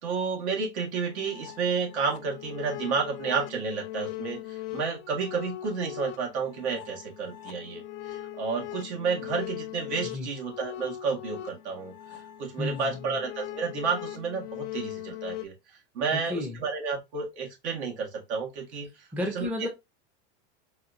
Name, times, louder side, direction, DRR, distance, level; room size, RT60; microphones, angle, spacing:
voice 1, 0.0-7.8 8.1-11.9 12.4-15.5 15.9-18.9 19.3-19.7, right 5 dB, 75° right, 1.6 m, -31 dB
sound 1, 1.1-15.5, left 13 dB, 50° left, 0.6 m, -40 dB
voice 2, 12.6-13.2 16.1-16.6 19.1-19.7, left 1 dB, 5° right, 0.5 m, -33 dB
4.1 x 2.7 x 2.5 m
supercardioid pair, 145°, 34 cm